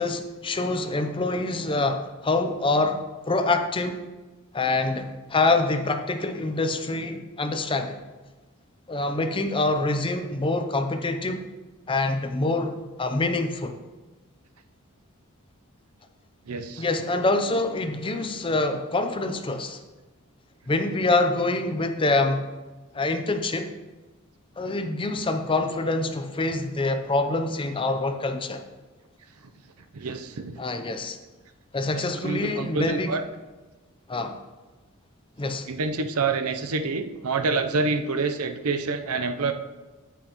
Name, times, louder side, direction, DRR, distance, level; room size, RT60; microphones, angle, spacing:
voice 1, 0.0-4.0 4.5-8.0 8.9-11.4 11.9-13.8 16.8-19.8 20.7-22.4 22.9-23.7 24.6-28.7 30.6-31.2 31.7-33.1 34.1-34.4 35.4-35.7, left 2 dB, 25° left, 7 dB, 0.6 m, -25 dB
voice 2, 16.5-16.8 29.9-30.6 31.9-33.2 35.7-39.5, right 4 dB, 90° right, 8 dB, 0.7 m, -27 dB
9.1 x 8.7 x 3.0 m, 1.2 s
head